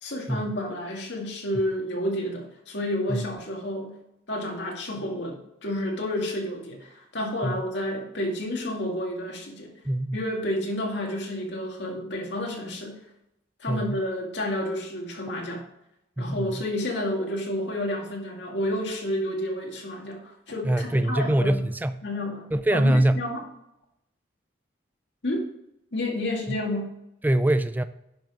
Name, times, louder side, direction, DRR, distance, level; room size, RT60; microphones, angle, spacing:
voice 1, 0.0-3.9 4.3-9.7 10.1-13.0 13.6-15.6 16.2-21.6 22.0-23.4 25.2-25.5 25.9-26.9, left 1 dB, 65° left, 2.1 m, -30 dB
voice 2, 9.9-10.2 13.7-14.0 16.2-16.6 20.6-22.0 22.5-23.2 27.2-27.8, right 1 dB, 10° right, 0.3 m, -23 dB
10.5 x 6.1 x 4.9 m
head